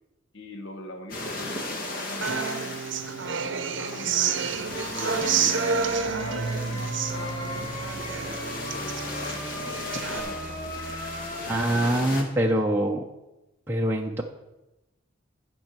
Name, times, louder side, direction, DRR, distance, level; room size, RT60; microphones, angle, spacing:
voice 1, 0.3-4.1 4.9-5.8 6.2-10.8 11.6-12.3 12.7-12.8, left 1 dB, 75° left, 4 dB, 1.1 m, -43 dB
sound 1, 1.1-12.2, left 2 dB, 45° left, 1.5 m, -37 dB
Human voice / Acoustic guitar, 2.2-10.2, right 6 dB, 65° right, 0.7 m, -29 dB
sound 2, 4.7-11.6, left 1 dB, 25° left, 1.5 m, -37 dB
voice 2, 11.5-13.0 13.7-14.2, right 1 dB, 10° right, 0 dB, 0.6 m, -24 dB
10.5 x 5.3 x 7.4 m, 0.98 s
head